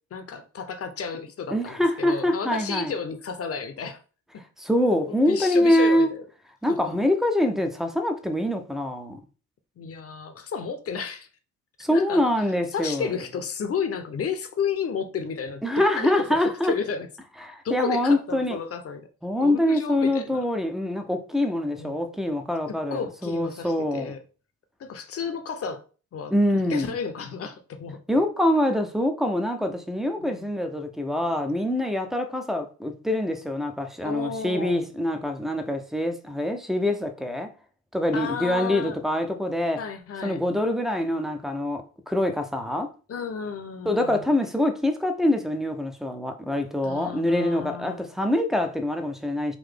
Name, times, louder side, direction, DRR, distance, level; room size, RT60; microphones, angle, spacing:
voice 1, 0.1-4.0 5.1-6.2 6.7-7.0 9.8-11.3 11.9-12.2 12.7-16.2 16.6-17.1 17.6-19.1 19.4-20.4 21.8-22.0 22.7-24.2 24.8-25.8 26.1-26.3 26.7-28.0 30.2-30.5 34.0-34.8 38.1-39.0 39.8-40.4 43.1-44.3 46.8-48.0, left 6 dB, 30° left, 0.7 m, -32 dB
voice 2, 1.5-2.9 4.6-6.1 6.6-9.2 11.8-13.1 15.6-16.7 17.4-18.6 19.2-24.1 26.3-26.9 28.1-37.5 37.9-39.8 40.2-42.9 43.9-49.6, left 1 dB, ahead, 0.5 m, -25 dB
3.9 x 2.6 x 3.6 m
hypercardioid pair, 60°, 44 cm